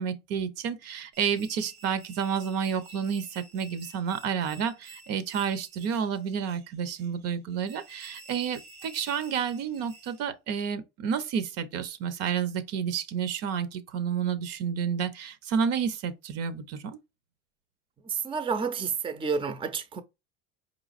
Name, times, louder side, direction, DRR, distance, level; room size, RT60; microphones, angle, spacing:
voice 1, 0.0-17.0, right 7 dB, 55° right, 0.7 m, -30 dB
sound 1, 1.1-10.2, right 2 dB, 85° right, 1.5 m, -51 dB
voice 2, 18.1-20.0, right 5 dB, 20° right, 0.5 m, -30 dB
4.6 x 3.0 x 2.5 m
supercardioid pair, 110°, 29 cm